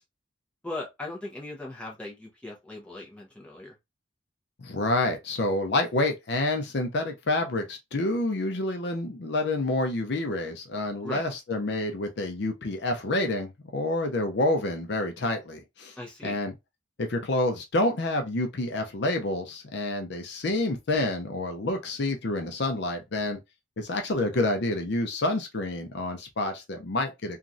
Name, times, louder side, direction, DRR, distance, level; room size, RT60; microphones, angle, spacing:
voice 1, 0.6-3.7 11.0-11.2 16.0-16.4, left 2 dB, 5° left, 0.7 m, -38 dB
voice 2, 4.6-15.9 16.2-16.5 17.0-23.4 23.8-27.4, left 2 dB, 60° left, 0.5 m, -28 dB
3.0 x 2.5 x 2.5 m
head